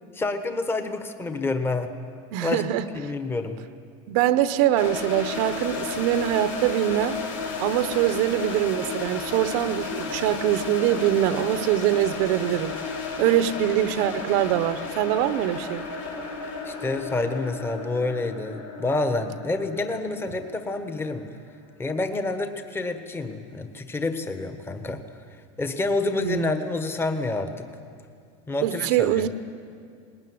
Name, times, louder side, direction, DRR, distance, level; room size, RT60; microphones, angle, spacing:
voice 1, 0.1-1.9 2.4-2.6 2.9-3.6 16.6-21.3 21.8-25.0 25.6-27.7 28.5-29.3, left 2 dB, 15° left, 7 dB, 1.4 m, -28 dB
voice 2, 2.3-2.9 4.1-7.2 7.6-12.7 13.2-15.8 26.2-26.5 28.6-29.3, right 12 dB, 65° right, 12 dB, 0.9 m, -23 dB
sound 1, 4.8-21.6, left 4 dB, 90° left, 4.8 m, -34 dB
20.0 x 19.0 x 9.6 m, 2.3 s
supercardioid pair, 135°, 17 cm